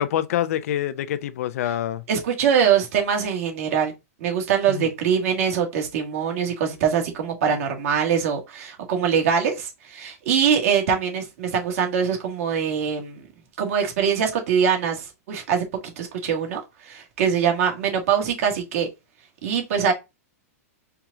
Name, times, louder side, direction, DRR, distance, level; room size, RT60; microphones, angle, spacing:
voice 1, 0.0-2.0 4.7-4.9, left 11 dB, 70° left, 0.5 m, -26 dB
voice 2, 2.1-3.9 4.2-13.3 13.6-18.9 19.4-19.9, right 7 dB, 65° right, 1.6 m, -23 dB
4.5 x 2.4 x 3.8 m
hypercardioid pair, 135°, 8 cm